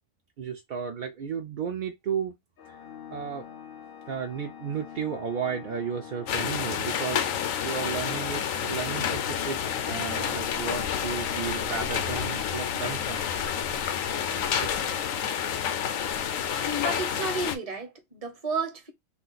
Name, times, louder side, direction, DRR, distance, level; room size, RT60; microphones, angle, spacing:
voice 1, 0.4-2.4 2.7-2.8 3.1-3.5 4.1-9.6 9.9-13.3 14.6-14.9, right 7 dB, 65° right, 0.5 m, -33 dB
Organ, 2.6-13.4, left 8 dB, 60° left, 0.6 m, -45 dB
sound 1, 6.3-17.6, left 8 dB, 90° left, 1.0 m, -29 dB
voice 2, 16.6-18.9, right 2 dB, 35° right, 0.8 m, -31 dB
2.5 x 2.4 x 3.8 m
omnidirectional pair, 1.3 m